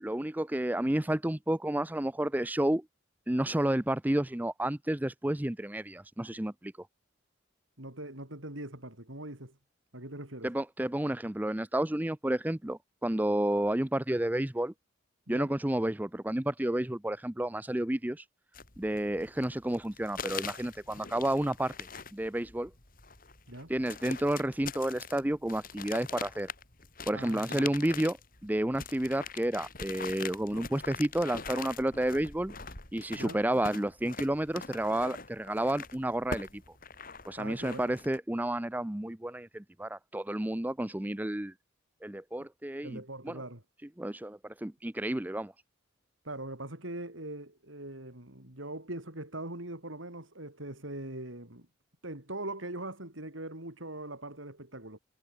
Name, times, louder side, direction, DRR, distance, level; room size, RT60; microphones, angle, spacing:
voice 1, 0.0-2.8 3.3-6.7 10.4-14.7 15.3-18.2 18.8-21.7 22.1-22.7 23.7-26.5 27.1-28.2 28.4-32.5 32.9-36.6 37.3-41.5 42.0-43.0 43.2-43.4 44.0-45.5, right 1 dB, 10° right, 0.5 m, -31 dB
voice 2, 7.8-9.6 9.9-10.5 15.3-15.5 23.5-23.7 27.1-27.7 33.1-33.4 37.4-38.0 42.8-43.6 46.2-51.7 52.0-55.0, right 1 dB, 75° right, 5.8 m, -41 dB
sound 1, 18.5-38.2, left 5 dB, 45° left, 5.1 m, -43 dB
head